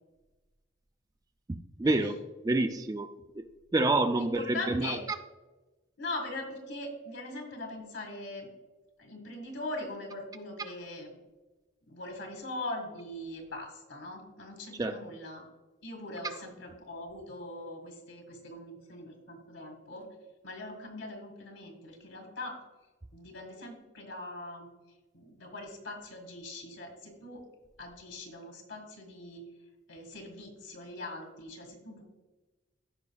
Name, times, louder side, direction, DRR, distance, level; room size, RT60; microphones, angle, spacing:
voice 1, 1.5-2.2 2.4-3.4 3.7-5.2 14.7-15.0, right 2 dB, 20° right, 8 dB, 0.3 m, -28 dB
voice 2, 4.1-5.0 6.0-8.5 9.0-11.2 11.9-15.4 15.8-20.1 20.4-22.5 23.1-24.7 25.1-27.4 27.8-29.4 29.9-32.0, left 2 dB, 75° left, 2 dB, 1.9 m, -41 dB
14.5 x 5.2 x 2.3 m, 1.2 s
head